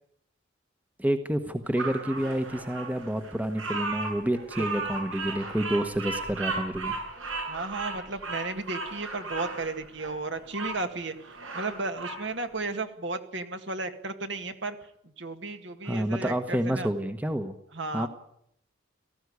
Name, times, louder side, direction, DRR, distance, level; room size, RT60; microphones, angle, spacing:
voice 1, 1.0-7.0 15.8-17.5 17.9-18.1, right 1 dB, 10° right, 9 dB, 1.1 m, -29 dB
Bird vocalization bird call bird song, 1.8-10.8 11.2-12.2, right 3 dB, 85° right, 7.9 m, -35 dB
voice 2, 7.5-11.2 11.5-14.8 15.0-16.9 17.7-18.1, right 3 dB, 60° right, 8 dB, 2.0 m, -34 dB
18.0 x 15.0 x 9.6 m, 0.74 s
head